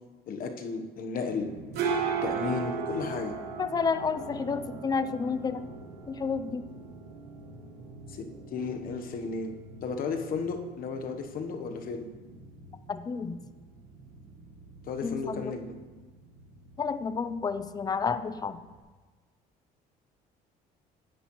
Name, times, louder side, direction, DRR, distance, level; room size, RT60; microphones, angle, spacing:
voice 1, 0.3-1.5 1.8-3.3 8.1-9.5 9.8-12.0 14.9-15.7, left 4 dB, 60° left, 5 dB, 1.0 m, -34 dB
sound 1, 1.3-18.8, right 5 dB, 85° right, 1.0 m, -39 dB
voice 2, 3.6-5.7 6.1-6.6 12.9-13.4 15.0-15.5 16.8-18.6, left 5 dB, 25° left, 12 dB, 0.4 m, -30 dB
9.8 x 8.3 x 3.0 m, 1.3 s
cardioid pair, 110°, 17 cm